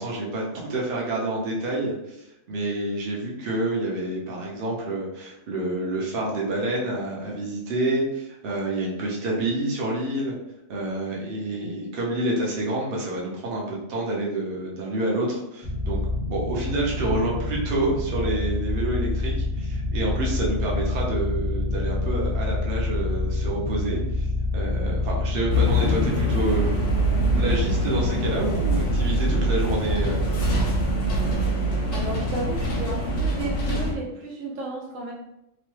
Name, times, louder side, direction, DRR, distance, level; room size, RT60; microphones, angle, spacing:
voice 1, 0.0-2.2 2.5-10.4 10.7-16.0 16.3-24.3 24.5-26.7 27.3-30.5, right 2 dB, 50° right, -3 dB, 0.8 m, -28 dB
sound 1, 15.6-30.9, left 2 dB, 30° left, 0.6 m, -27 dB
sound 2, 25.5-33.9, right 1 dB, 75° left, 1.1 m, -24 dB
voice 2, 31.9-35.1, right 2 dB, 80° right, -1 dB, 0.9 m, -33 dB
3.0 x 2.1 x 3.1 m, 0.87 s
omnidirectional pair, 1.3 m